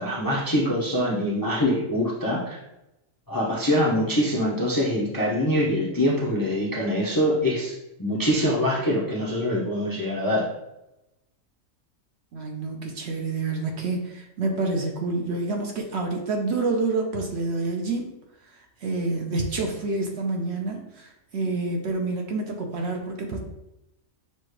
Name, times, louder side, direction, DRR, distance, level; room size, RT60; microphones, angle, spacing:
voice 1, 0.0-2.6 3.3-7.7 8.0-10.5, equal, 20° left, -4 dB, 0.6 m, -24 dB
voice 2, 12.3-18.2 18.8-23.4, right 3 dB, 60° right, 2 dB, 0.9 m, -28 dB
6.7 x 2.4 x 3.2 m, 0.90 s
omnidirectional pair, 1.4 m